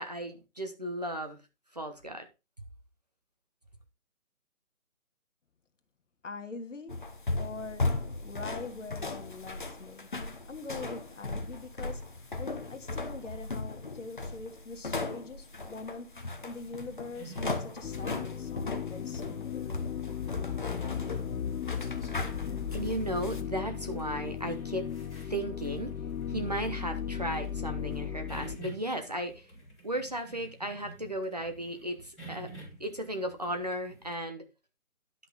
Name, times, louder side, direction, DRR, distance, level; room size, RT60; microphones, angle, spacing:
voice 1, 0.0-1.4 1.7-2.3 2.6-2.7 22.7-24.8 25.2-25.9 26.3-29.5 29.8-32.5 32.8-34.4, right 1 dB, 30° right, 0.9 m, -35 dB
voice 2, 6.2-7.1 7.4-7.9 8.2-19.7, left 3 dB, 55° left, 1.7 m, -43 dB
sound 1, 6.9-23.4, left 2 dB, 35° left, 0.9 m, -37 dB
sound 2, 16.3-34.1, right 1 dB, ahead, 1.4 m, -51 dB
sound 3, 17.8-28.6, left 8 dB, 75° left, 1.0 m, -36 dB
11.0 x 5.8 x 3.9 m
hypercardioid pair, 175°, 43 cm